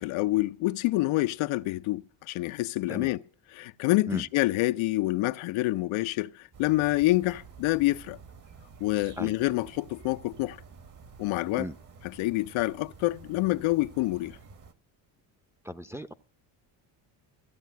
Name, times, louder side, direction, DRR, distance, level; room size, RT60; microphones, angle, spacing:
voice 1, 0.0-3.2 3.6-8.2 8.8-10.6 11.2-11.7 12.2-14.4, left 18 dB, 75° left, 0.7 m, -27 dB
sound 1, 6.5-14.7, right 5 dB, 40° right, 1.2 m, -51 dB
voice 2, 15.6-16.1, equal, 5° right, 0.6 m, -36 dB
14.5 x 7.4 x 9.2 m
cardioid pair, 105°, 48 cm